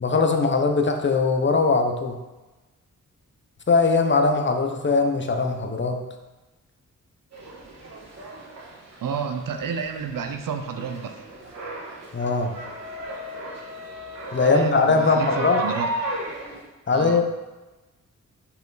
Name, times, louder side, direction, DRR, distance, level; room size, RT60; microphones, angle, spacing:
voice 1, 0.0-2.2 3.7-6.0 12.1-12.5 14.3-15.6 16.9-17.2, left 4 dB, 35° left, 5 dB, 0.7 m, -21 dB
Market Walk, 7.3-16.6, right 1 dB, 55° right, 1.5 m, -35 dB
voice 2, 9.0-11.1 14.4-15.9 16.9-17.2, right 6 dB, 85° right, 6 dB, 0.7 m, -30 dB
5.6 x 4.6 x 3.9 m, 1.1 s
wide cardioid pair, 85°, 32 cm